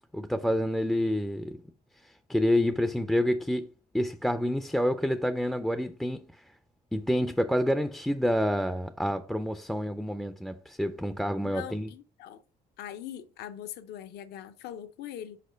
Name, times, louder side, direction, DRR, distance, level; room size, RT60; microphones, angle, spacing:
voice 1, 0.1-1.6 2.0-3.7 3.9-6.4 6.9-11.9, equal, ahead, 0.3 m, -28 dB
voice 2, 11.4-12.4 12.8-15.4, left 10 dB, 75° left, 0.6 m, -41 dB
5.0 x 4.3 x 5.0 m
cardioid pair, 110°, 17 cm